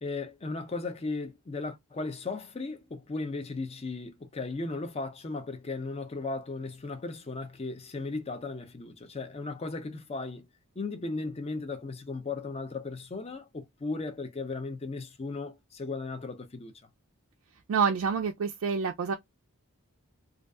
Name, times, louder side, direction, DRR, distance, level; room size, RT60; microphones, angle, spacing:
voice 1, 0.0-10.5 10.8-16.7, left 3 dB, 25° left, 0.4 m, -36 dB
voice 2, 17.7-19.1, right 6 dB, 65° right, 0.3 m, -27 dB
2.5 x 2.3 x 2.2 m
head